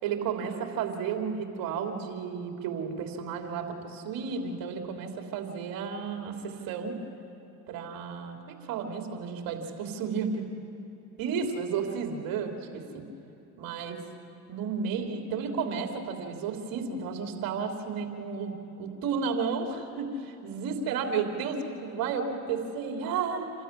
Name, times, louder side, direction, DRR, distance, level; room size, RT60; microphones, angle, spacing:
voice 1, 0.0-6.9 7.7-10.4 11.2-13.1 13.6-14.0 14.5-23.5, right 6 dB, 60° right, 3 dB, 3.3 m, -32 dB
27.5 x 12.5 x 9.8 m, 2.8 s
hypercardioid pair, 90°, 40 cm